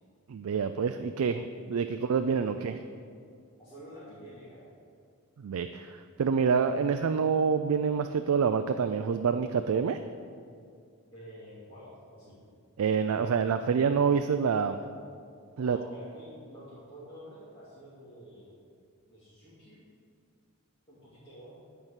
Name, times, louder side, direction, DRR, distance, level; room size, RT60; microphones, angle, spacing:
voice 1, 0.3-2.8 5.4-10.0 12.8-14.8 15.6-15.8, right 6 dB, 80° right, 8 dB, 0.4 m, -27 dB
voice 2, 3.6-4.6 11.1-12.3 15.6-18.6 19.1-19.8 20.9-21.6, equal, 25° left, -12 dB, 2.3 m, -49 dB
13.0 x 4.6 x 5.8 m, 2.2 s
head